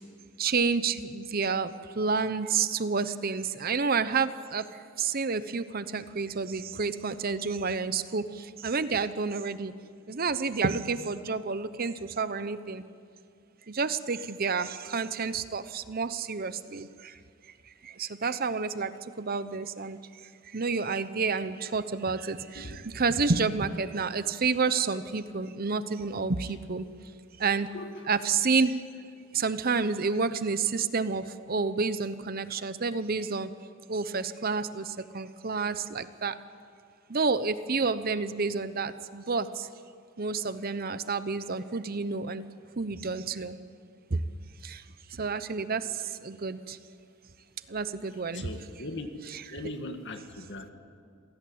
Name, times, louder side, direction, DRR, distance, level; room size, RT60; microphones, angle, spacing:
voice 1, 0.4-4.7 5.0-9.7 10.1-12.8 13.7-17.2 17.8-20.1 20.4-26.9 27.4-27.7 28.1-28.9 29.3-33.5 33.9-36.4 37.1-39.7 40.2-43.6 44.1-44.2 44.6-44.8 45.1-46.8 47.7-48.5, right 4 dB, 45° right, 13 dB, 0.8 m, -29 dB
voice 2, 27.7-28.1 48.3-49.1 49.5-50.7, left 2 dB, 55° left, 6 dB, 1.9 m, -39 dB
27.0 x 17.5 x 8.6 m, 2.3 s
head